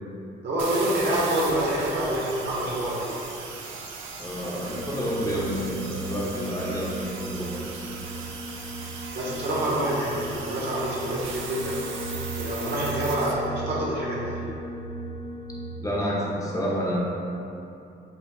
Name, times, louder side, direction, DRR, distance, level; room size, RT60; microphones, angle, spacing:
voice 1, 0.4-3.1 9.1-11.9 12.3-14.4, right 1 dB, 60° right, -6 dB, 1.4 m, -27 dB
sound 1, 0.6-13.3, right 4 dB, 80° right, 0.6 m, -38 dB
voice 2, 4.2-7.9 15.8-17.0, equal, 15° left, -5 dB, 0.8 m, -29 dB
sound 2, 4.6-15.8, right 1 dB, 60° left, 1.0 m, -37 dB
5.4 x 4.0 x 2.4 m, 2.8 s
cardioid pair, 90°, 20 cm